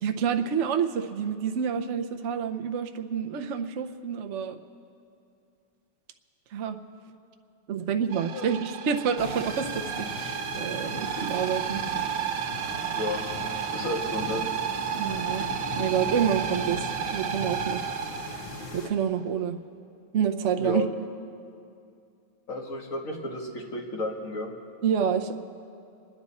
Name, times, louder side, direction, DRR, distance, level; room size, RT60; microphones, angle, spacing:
voice 1, 0.0-4.6 6.5-6.8 7.7-11.8 14.9-15.5 15.8-17.8 18.7-19.6 20.1-20.8 24.8-25.3, right 7 dB, 85° right, 5 dB, 0.6 m, -28 dB
sound 1, 8.1-18.9, right 9 dB, 70° right, 1.2 m, -32 dB
sound 2, 9.2-18.9, left 3 dB, 65° left, 1.9 m, -38 dB
voice 2, 12.9-13.2 13.7-14.4 20.6-20.9 22.5-24.5, left 2 dB, 45° left, 0 dB, 1.8 m, -32 dB
27.5 x 10.5 x 4.2 m, 2.5 s
omnidirectional pair, 2.2 m